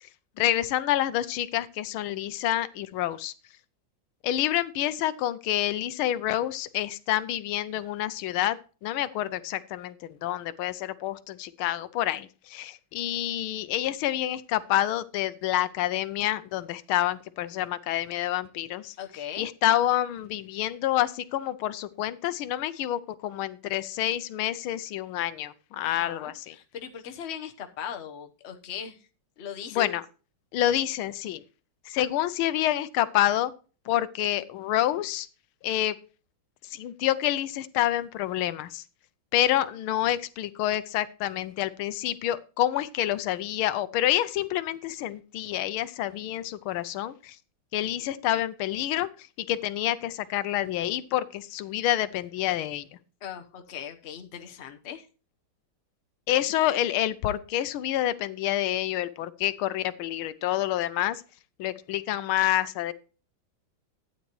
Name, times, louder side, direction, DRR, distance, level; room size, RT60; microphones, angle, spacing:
voice 1, 0.4-3.3 4.2-8.6 8.8-18.9 19.4-26.5 29.7-30.0 30.5-31.4 31.9-33.5 33.9-35.3 35.6-35.9 36.7-38.8 39.3-47.4 47.7-49.1 49.4-52.8 56.3-61.2 61.6-62.9, left 13 dB, 80° left, 15 dB, 1.5 m, -28 dB
voice 2, 19.0-19.5 25.8-29.0 29.4-29.9 53.2-55.1, left 8 dB, 45° left, 5 dB, 0.9 m, -39 dB
12.5 x 9.1 x 3.0 m, 0.36 s
omnidirectional pair, 2.3 m